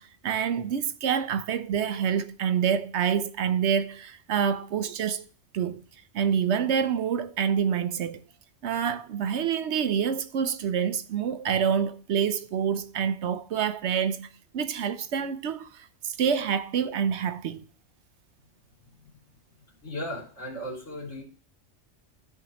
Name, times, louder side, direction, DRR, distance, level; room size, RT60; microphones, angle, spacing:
voice 1, 0.0-5.3 5.5-5.8 6.1-8.2 8.6-14.3 14.5-17.6, right 7 dB, 70° right, 0.9 m, -27 dB
voice 2, 19.8-21.2, equal, 75° left, 3.4 m, -36 dB
14.0 x 4.8 x 2.9 m
omnidirectional pair, 1.3 m